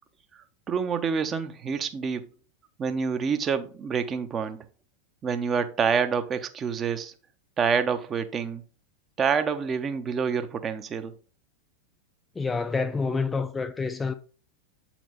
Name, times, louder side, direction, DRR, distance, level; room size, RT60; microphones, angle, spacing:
voice 1, 0.7-2.3 2.8-4.6 5.2-7.1 7.6-8.6 9.2-11.1, right 6 dB, 25° right, 0.8 m, -27 dB
voice 2, 12.4-14.1, left 4 dB, 15° left, 0.5 m, -28 dB
8.2 x 4.5 x 4.0 m
figure-of-eight pair, 90°, 0 cm